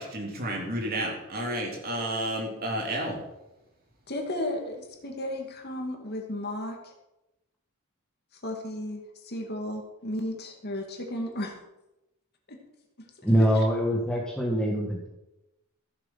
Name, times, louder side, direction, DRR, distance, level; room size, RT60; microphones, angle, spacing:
voice 1, 0.0-3.2, right 1 dB, 45° right, 0 dB, 3.3 m, -31 dB
voice 2, 4.1-6.9 8.4-11.5 12.5-12.6 13.5-13.6, left 1 dB, 50° left, 2 dB, 2.3 m, -34 dB
voice 3, 13.2-15.1, equal, 5° left, -3 dB, 1.5 m, -24 dB
14.5 x 7.6 x 5.7 m, 0.95 s
head